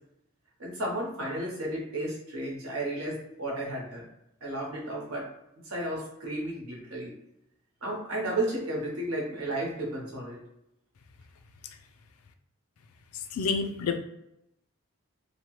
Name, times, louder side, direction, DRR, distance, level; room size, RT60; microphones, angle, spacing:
voice 1, 0.6-4.1 4.4-5.3 5.6-7.1 7.8-10.4, right 1 dB, 85° right, -2 dB, 1.0 m, -33 dB
voice 2, 13.3-14.0, left 5 dB, 85° left, 6 dB, 0.4 m, -28 dB
2.9 x 2.2 x 3.0 m, 0.82 s
head